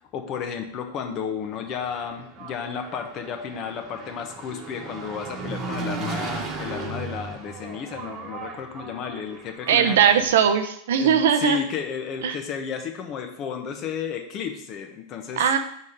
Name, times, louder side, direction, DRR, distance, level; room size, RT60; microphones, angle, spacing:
voice 1, 0.1-10.0 11.0-15.5, left 7 dB, 45° left, 5 dB, 1.0 m, -33 dB
Engine, 1.5-10.3, right 3 dB, 35° right, 1.2 m, -36 dB
voice 2, 9.7-11.6 12.2-12.4 15.4-15.6, right 8 dB, 75° right, 7 dB, 0.7 m, -19 dB
5.0 x 4.2 x 5.5 m, 0.70 s
hypercardioid pair, 100°, 0 cm